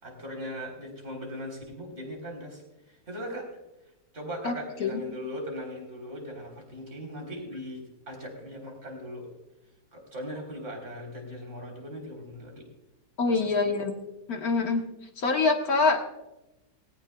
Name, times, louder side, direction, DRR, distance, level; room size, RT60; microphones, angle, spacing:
voice 1, 0.0-3.5 4.1-9.3 9.9-12.7 13.3-13.8, equal, 35° right, 0 dB, 4.1 m, -39 dB
voice 2, 13.2-13.9 14.3-14.8 15.2-16.1, left 4 dB, 55° left, 3 dB, 1.7 m, -25 dB
19.0 x 17.5 x 2.3 m, 0.96 s
omnidirectional pair, 2.0 m